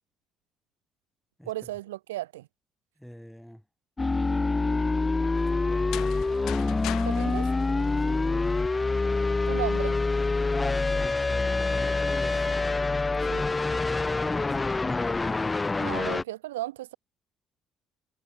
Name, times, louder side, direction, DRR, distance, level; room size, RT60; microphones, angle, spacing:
voice 1, 1.5-2.5 7.0-7.5 9.4-10.0 13.3-13.4 15.8-17.0, right 16 dB, 80° right, 2.6 m, -35 dB
voice 2, 3.0-3.6 5.5-6.1 8.0-8.3 10.5-12.5 13.8-15.2, equal, ahead, 4.1 m, -43 dB
sound 1, 4.0-16.2, left 3 dB, 25° left, 0.6 m, -26 dB
sound 2, 5.7-8.6, left 15 dB, 65° left, 1.4 m, -40 dB
hypercardioid pair, 50°, 0 cm